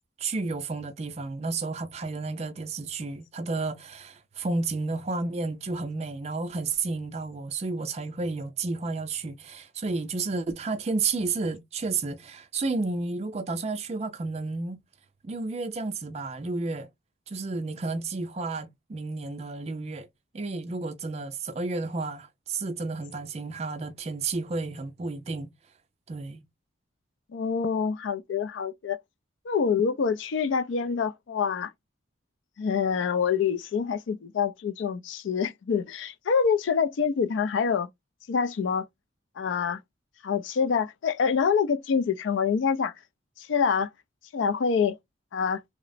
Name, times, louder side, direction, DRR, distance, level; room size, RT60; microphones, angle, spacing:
voice 1, 0.2-14.8 15.2-16.9 17.3-20.1 20.3-25.5 26.1-26.5, right 3 dB, 35° right, 0.3 m, -31 dB
voice 2, 27.3-29.0 29.5-31.7 32.6-37.9 38.3-38.9 39.4-39.8 40.2-42.9 43.4-43.9 44.3-45.0 45.3-45.6, left 6 dB, 75° left, 0.3 m, -26 dB
2.9 x 2.0 x 2.5 m
head